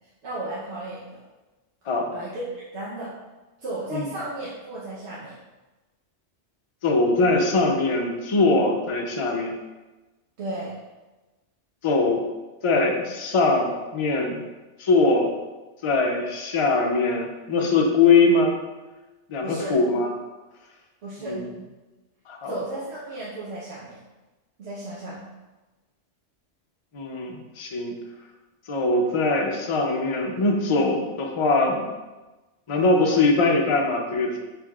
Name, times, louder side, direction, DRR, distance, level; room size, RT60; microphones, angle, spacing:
voice 1, 0.2-1.2 2.1-3.1 3.6-5.3 10.4-10.8 19.4-19.8 21.0-21.4 22.5-24.0 24.6-25.2, right 2 dB, 70° right, -8 dB, 1.1 m, -34 dB
voice 2, 6.8-9.5 11.8-12.2 12.6-14.4 14.8-15.3 15.8-18.5 19.3-20.1 21.2-21.4 22.3-22.5 26.9-27.9 28.7-31.9 32.7-34.4, left 3 dB, 40° left, 1 dB, 0.4 m, -22 dB
6.3 x 3.4 x 2.4 m, 1.2 s
omnidirectional pair, 1.2 m